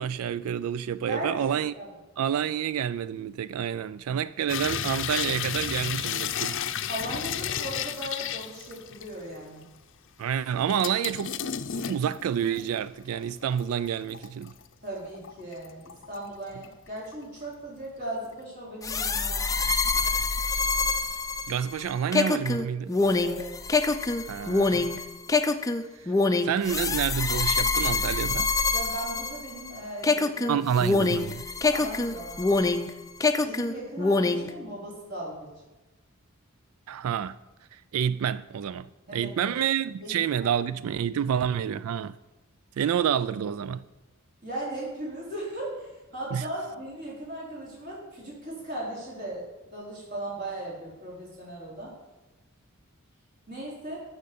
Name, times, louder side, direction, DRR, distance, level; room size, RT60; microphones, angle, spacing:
voice 1, 0.0-1.7 2.2-6.6 10.2-14.5 21.5-22.9 24.3-24.9 26.0-26.2 26.4-28.5 30.5-31.5 36.9-37.4 37.7-38.9 39.1-42.2 42.8-43.8 46.3-46.4, right 8 dB, 90° right, 0.3 m, -28 dB
voice 2, 1.1-1.9 6.9-9.6 14.8-19.5 23.2-23.5 28.7-30.5 31.7-32.5 33.4-35.5 39.1-39.5 40.0-40.5 41.2-41.3 44.4-49.4 49.7-51.9 53.5-54.0, right 1 dB, 50° right, 4.3 m, -37 dB
sound 1, 4.5-9.3 9.6-9.7 10.7-12.9 13.3-14.6 15.0-16.3 16.6-17.1 17.4-17.5, left 9 dB, 60° left, 0.6 m, -33 dB
sound 2, 18.8-29.7 30.0-32.9 33.2-34.5, left 3 dB, 15° left, 0.5 m, -25 dB
12.0 x 6.7 x 6.8 m
head